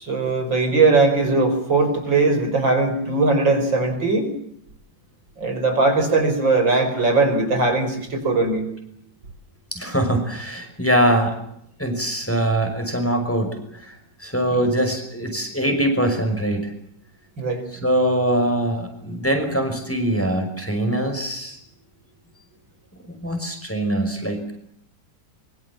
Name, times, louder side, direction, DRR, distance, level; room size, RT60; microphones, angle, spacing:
voice 1, 0.0-4.3 5.4-8.7 14.5-14.7 17.4-17.6, right 3 dB, 75° right, 6 dB, 6.2 m, -20 dB
voice 2, 9.7-11.4 11.8-16.7 17.7-21.6 23.1-24.5, right 1 dB, 5° left, 4 dB, 5.5 m, -23 dB
25.0 x 24.0 x 7.3 m, 0.72 s
omnidirectional pair, 2.0 m